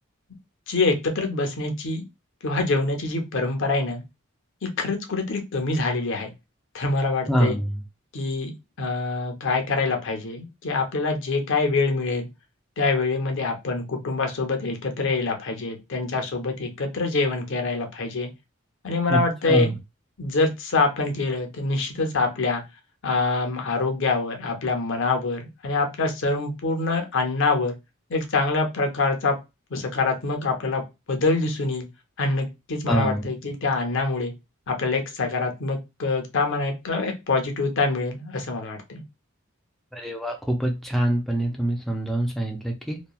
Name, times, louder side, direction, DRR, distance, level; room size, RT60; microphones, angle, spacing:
voice 1, 0.7-2.0 2.4-4.0 4.6-6.3 6.7-7.6 8.1-8.5 8.8-12.3 12.8-18.3 18.8-19.7 20.2-22.6 23.0-27.7 28.1-29.4 29.7-30.8 31.1-31.9 32.2-34.3 34.7-39.0, left 3 dB, 65° left, 4 dB, 0.7 m, -25 dB
voice 2, 7.3-7.8 19.1-19.2 19.5-19.8 32.9-33.2 39.9-43.0, right 1 dB, ahead, 1 dB, 0.4 m, -25 dB
2.9 x 2.2 x 2.2 m, 0.24 s
head